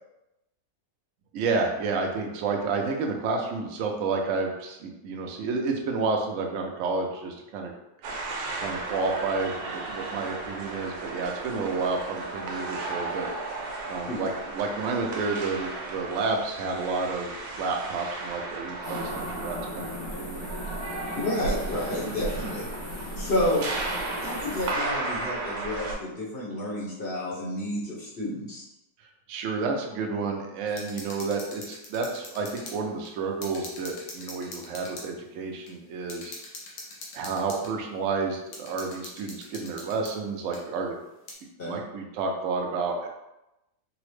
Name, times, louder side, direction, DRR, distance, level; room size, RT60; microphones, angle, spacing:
voice 1, 1.3-7.7 8.6-13.3 13.9-17.3 17.6-20.5 29.3-36.3 37.1-40.9 41.7-43.1, right 4 dB, 75° right, 1 dB, 0.7 m, -30 dB
sound 1, 8.0-25.9, right 3 dB, 90° right, 1.4 m, -34 dB
sound 2, 18.8-24.7, left 3 dB, 70° left, 1.3 m, -39 dB
voice 2, 21.1-22.7 23.2-23.7 24.2-28.6 41.6-41.8, left 1 dB, 40° left, -7 dB, 1.0 m, -30 dB
sound 3, 30.7-32.8 33.0-33.1 33.4-35.1 35.7-35.8 36.1-37.7 38.5-40.1 40.5-40.6 41.3-41.4, left 2 dB, 85° left, 1.5 m, -42 dB
3.9 x 2.0 x 3.1 m, 0.93 s
omnidirectional pair, 1.9 m